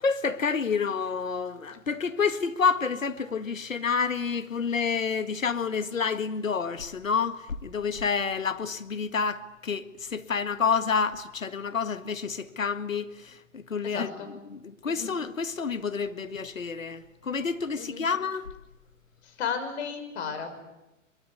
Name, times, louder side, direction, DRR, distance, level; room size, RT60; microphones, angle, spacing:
voice 1, 0.0-18.5, left 5 dB, 85° left, 1.8 m, -29 dB
voice 2, 13.9-14.3 14.9-15.1 17.8-18.0 19.2-20.7, left 6 dB, 55° left, 6.2 m, -34 dB
24.0 x 22.5 x 9.7 m
hypercardioid pair, 120°, 38 cm